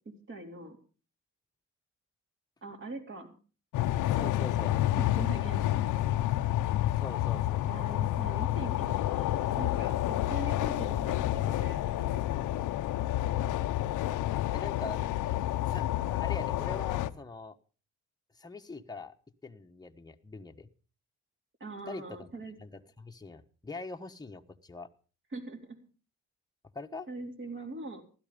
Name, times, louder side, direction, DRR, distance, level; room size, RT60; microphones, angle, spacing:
voice 1, 0.3-0.8 2.6-3.3 5.0-6.2 7.7-12.7 21.6-22.6 25.3-25.6 27.1-28.0, right 2 dB, 40° right, 4 dB, 4.1 m, -42 dB
sound 1, 3.7-17.1, left 14 dB, 85° left, 0.9 m, -29 dB
voice 2, 4.0-4.8 7.0-8.1 14.5-15.0 15.6-17.6 18.3-19.2 19.4-20.7 21.9-22.3 22.6-24.9 26.7-27.1, left 3 dB, 15° left, 5 dB, 1.3 m, -43 dB
16.0 x 12.5 x 5.2 m, 0.37 s
cardioid pair, 90°, 30 cm